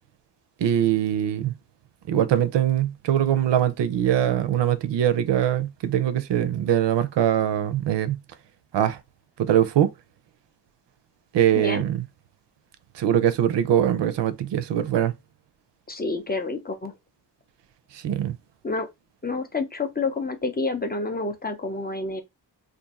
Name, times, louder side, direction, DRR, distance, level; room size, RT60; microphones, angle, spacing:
voice 1, 0.6-1.5 2.1-8.2 8.7-9.0 9.4-9.9 11.3-12.0 12.9-15.1 17.9-18.4, right 10 dB, 80° right, 0.6 m, -22 dB
voice 2, 15.9-16.9 18.6-18.9 19.2-22.2, left 3 dB, 25° left, 0.4 m, -28 dB
2.5 x 2.5 x 4.0 m
wide cardioid pair, 175°, 41 cm